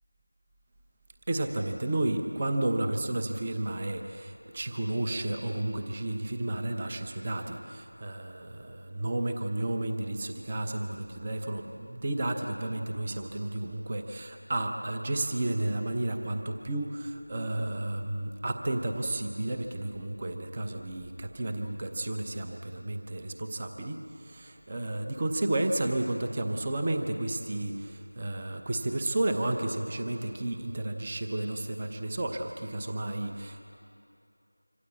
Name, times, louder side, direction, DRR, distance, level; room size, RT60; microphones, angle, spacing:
voice 1, 1.3-33.6, right 1 dB, 15° right, 4 dB, 0.8 m, -32 dB
25.5 x 25.5 x 8.5 m, 2.7 s
figure-of-eight pair, 175°, 0 cm